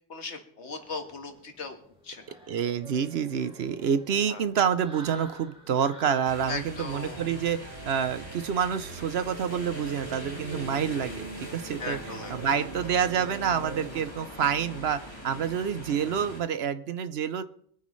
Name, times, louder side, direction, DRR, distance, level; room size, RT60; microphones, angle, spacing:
voice 1, 0.1-1.8 2.0-2.4 4.3-4.4 6.5-7.3 11.8-12.9, left 4 dB, 65° left, 5 dB, 1.9 m, -38 dB
sound 1, 0.7-6.3, equal, 5° right, 2.2 m, -50 dB
voice 2, 2.5-17.4, right 7 dB, 60° right, 13 dB, 0.9 m, -28 dB
sound 2, 6.2-16.4, left 1 dB, 20° left, 2.6 m, -43 dB
sound 3, 7.1-14.0, right 3 dB, 40° right, 1.6 m, -42 dB
24.5 x 9.3 x 3.2 m, 0.63 s
omnidirectional pair, 1.3 m